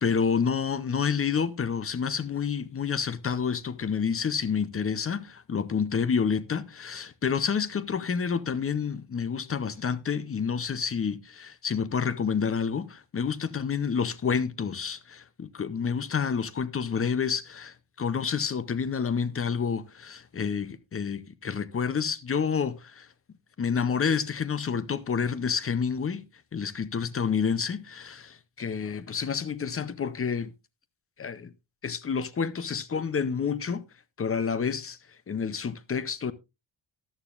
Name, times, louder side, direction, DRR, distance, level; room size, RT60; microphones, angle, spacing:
voice 1, 0.0-23.1 23.6-26.2 26.5-30.5 31.2-31.5 31.8-33.8 34.2-35.0 35.3-36.3, left 6 dB, 30° left, 0.6 m, -29 dB
14.0 x 11.0 x 2.4 m
wide cardioid pair, 160°, 47 cm